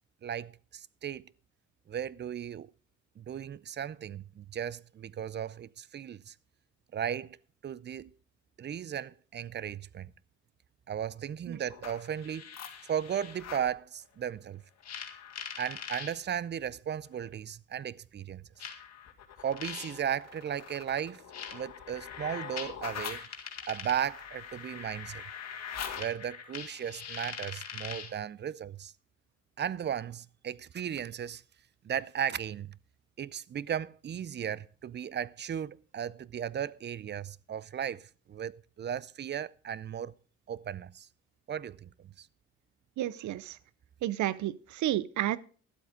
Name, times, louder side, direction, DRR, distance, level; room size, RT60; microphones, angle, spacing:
voice 1, 0.2-1.3 1.9-2.7 3.2-6.3 6.9-7.4 7.6-8.1 8.6-10.1 10.9-12.5 12.9-14.6 15.6-18.4 19.4-21.2 21.5-23.3 23.7-25.2 26.0-28.9 29.6-31.4 31.8-32.7 33.2-40.1 40.5-41.1 41.5-42.3, right 9 dB, 35° right, 0.5 m, -36 dB
sound 1, 11.7-13.7 14.8-16.1 17.2-17.3 18.6-28.2, left 7 dB, 60° left, 2.0 m, -42 dB
voice 2, 43.0-43.6 44.0-45.4, right 13 dB, 75° right, 0.7 m, -31 dB
12.0 x 8.0 x 5.0 m
cardioid pair, 90°, 30 cm